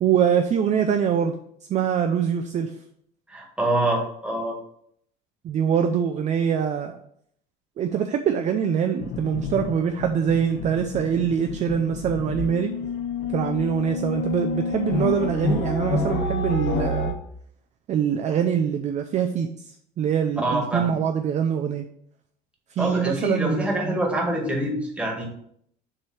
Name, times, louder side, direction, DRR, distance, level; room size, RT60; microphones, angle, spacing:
voice 1, 0.0-1.4 1.7-2.7 5.4-7.0 7.8-12.7 13.3-17.1 17.9-21.9 22.8-24.0, right 8 dB, 35° right, 5 dB, 0.5 m, -24 dB
voice 2, 3.3-4.5 20.4-21.0 22.8-25.3, right 1 dB, 5° right, -1 dB, 1.7 m, -25 dB
sound 1, 9.0-17.1, left 3 dB, 65° left, 1.0 m, -28 dB
7.2 x 3.2 x 6.2 m, 0.69 s
cardioid pair, 145°, 21 cm